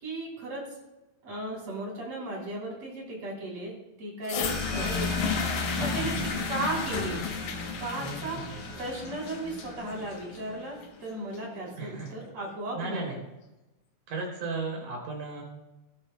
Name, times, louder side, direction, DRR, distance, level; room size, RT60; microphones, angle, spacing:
voice 1, 0.0-0.6 1.2-5.3 5.8-6.1 6.5-7.2 7.8-8.4 8.8-13.2, right 2 dB, 50° right, -2 dB, 4.6 m, -36 dB
sound 1, 4.2-12.2 13.1-13.2, left 7 dB, 70° left, 2.5 m, -35 dB
sound 2, 4.4-10.7, left 3 dB, 20° left, 5.2 m, -35 dB
voice 2, 5.8-6.1 8.0-8.4 11.8-12.1 12.7-13.2 14.1-15.4, right 3 dB, 75° right, -1 dB, 4.8 m, -35 dB
18.5 x 12.5 x 2.3 m, 1.0 s
omnidirectional pair, 3.8 m